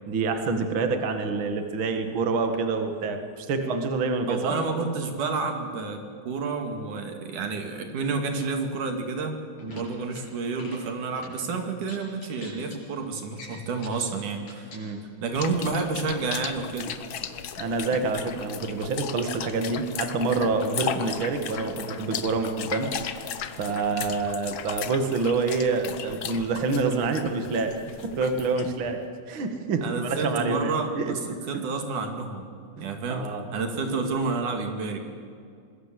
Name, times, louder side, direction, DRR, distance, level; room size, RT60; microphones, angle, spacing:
voice 1, 0.1-4.5 9.6-9.8 14.7-15.0 17.6-22.9 23.6-27.8 28.0-29.0 29.3-31.1 31.5-31.6 32.8-33.4, right 4 dB, 45° right, 6 dB, 2.5 m, -27 dB
voice 2, 4.3-9.4 9.7-14.7 15.2-16.9 29.8-31.1 31.5-35.0, right 4 dB, 85° right, 4 dB, 3.8 m, -30 dB
sound 1, 9.6-10.2 10.5-10.8 11.2-11.3 11.8-12.8 13.3-14.0 14.4-14.9, left 2 dB, 85° left, 8.4 m, -45 dB
sound 2, 15.3-28.9, left 8 dB, 60° left, 1.4 m, -36 dB
26.0 x 21.0 x 7.6 m, 2.3 s
omnidirectional pair, 3.5 m